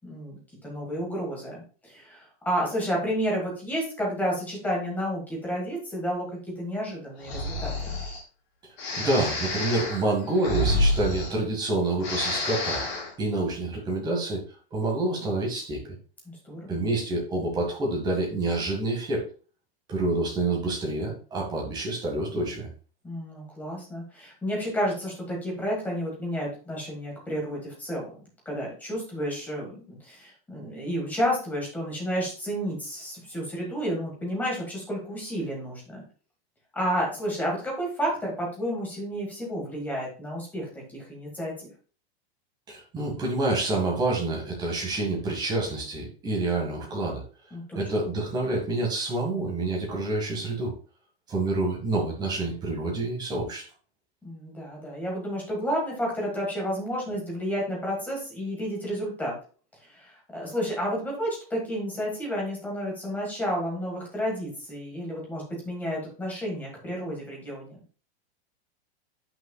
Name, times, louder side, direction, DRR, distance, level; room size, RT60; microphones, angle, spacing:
voice 1, 0.0-6.3 6.6-8.0 16.2-16.8 23.0-36.0 36.7-41.7 47.5-47.8 54.2-59.4 59.9-67.8, equal, 5° left, -3 dB, 1.6 m, -31 dB
Breathing, 7.2-8.2 8.8-11.7 12.0-13.1, left 1 dB, 40° left, 3.0 m, -28 dB
voice 2, 9.0-12.8 13.2-14.4 14.7-15.8 16.7-19.2 19.9-22.7 42.7-47.2 47.7-50.7 51.3-53.6, right 2 dB, 15° right, -1 dB, 1.6 m, -27 dB
9.0 x 5.8 x 2.3 m, 0.39 s
supercardioid pair, 175°, 32 cm